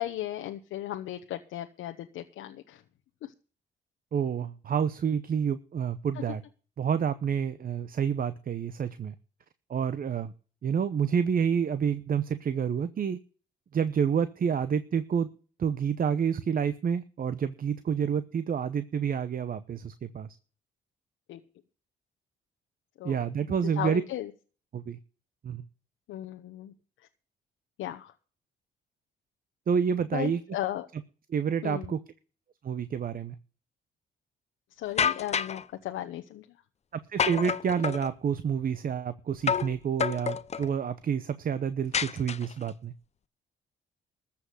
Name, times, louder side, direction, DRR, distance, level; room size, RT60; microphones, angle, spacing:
voice 1, 0.0-2.8 3.2-3.3 21.3-21.4 23.0-23.2 23.8-24.3 26.1-26.7 27.8-28.1 30.1-30.9 31.6-31.9 34.8-36.5, left 13 dB, 85° left, 5 dB, 1.0 m, -36 dB
voice 2, 4.1-6.4 6.8-9.1 9.7-10.3 10.6-13.2 13.7-15.3 15.6-20.3 23.0-24.0 24.7-25.0 25.4-25.6 29.7-30.4 31.3-32.0 32.6-33.4 37.1-42.9, right 7 dB, 45° right, 13 dB, 0.9 m, -28 dB
sound 1, 35.0-35.6 37.2-38.1 39.5-39.7 40.0-40.7 41.9-42.7, left 7 dB, 35° left, 0.6 m, -28 dB
14.0 x 5.9 x 8.1 m, 0.39 s
cardioid pair, 90°, 20 cm